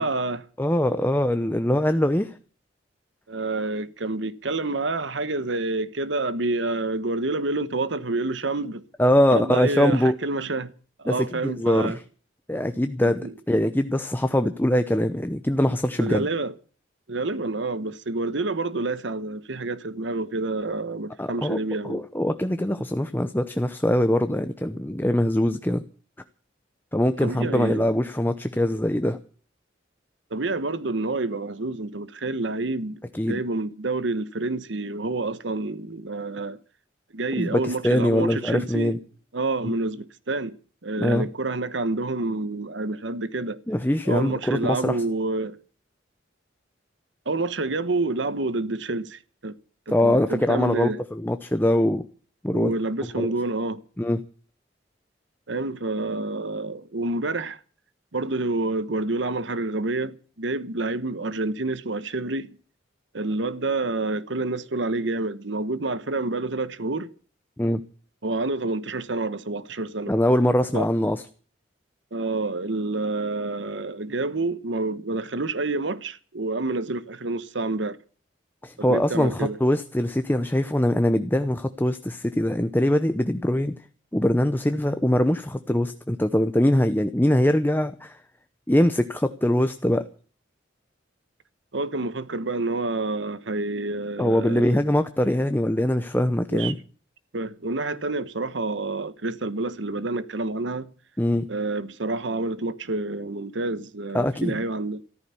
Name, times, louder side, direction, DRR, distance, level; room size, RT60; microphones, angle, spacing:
voice 1, 0.0-0.5 3.3-8.8 9.3-10.7 11.0-12.0 13.0-13.3 16.0-16.5 17.1-22.0 27.2-27.9 30.3-33.0 33.3-36.6 37.1-39.0 39.3-43.6 44.0-45.6 47.2-49.6 49.9-51.0 52.5-53.8 55.5-57.6 58.1-62.6 63.1-67.1 68.2-70.1 70.7-70.9 72.1-78.0 78.8-79.6 91.7-94.9 96.5-96.7 97.3-100.9 101.5-105.0, right 2 dB, 70° right, 1.1 m, -28 dB
voice 2, 0.6-2.3 9.0-10.1 11.1-11.9 12.5-16.3 21.2-21.6 21.8-25.8 26.9-29.2 33.1-33.4 37.4-39.0 39.7-39.8 41.0-41.3 43.7-45.0 49.9-52.0 52.4-52.7 53.2-53.3 54.0-54.2 67.6-67.8 70.1-71.2 78.6-83.7 84.1-88.2 88.7-90.0 94.2-96.8 101.2-101.5 104.1-104.6, left 1 dB, 10° left, 0.7 m, -22 dB
14.0 x 14.0 x 7.0 m
head